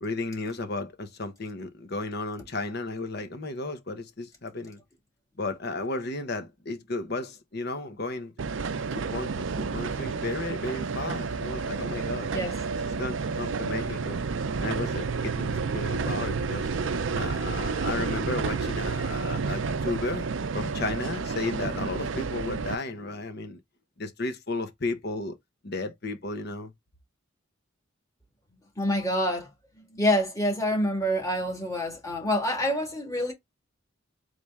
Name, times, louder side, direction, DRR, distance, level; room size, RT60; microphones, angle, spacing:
voice 1, 0.0-4.8 5.4-8.3 8.9-12.3 12.9-14.2 14.6-16.8 17.1-23.6 24.0-25.4 25.6-26.7, left 2 dB, 55° left, 1.0 m, -34 dB
sound 1, 8.4-22.8, right 5 dB, 70° right, 0.5 m, -30 dB
voice 2, 28.8-29.5 29.9-33.3, equal, 15° left, 1.6 m, -26 dB
4.0 x 3.2 x 3.4 m
head